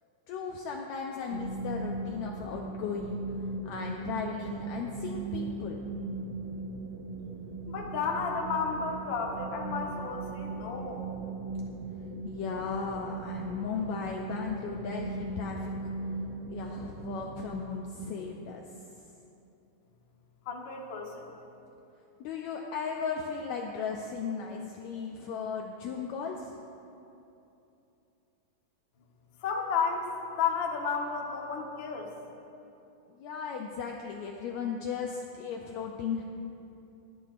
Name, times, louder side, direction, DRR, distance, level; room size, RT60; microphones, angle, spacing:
voice 1, 0.3-6.0 12.2-15.9 16.5-18.6 22.2-26.6 33.1-36.2, left 6 dB, 80° left, 1 dB, 1.7 m, -36 dB
sound 1, 1.3-17.5, right 3 dB, 85° right, 2.4 m, -38 dB
voice 2, 7.7-11.1 20.4-21.3 29.4-30.1 30.4-32.1, left 5 dB, 60° left, 0 dB, 1.2 m, -32 dB
22.0 x 9.9 x 2.5 m, 2.8 s
omnidirectional pair, 3.8 m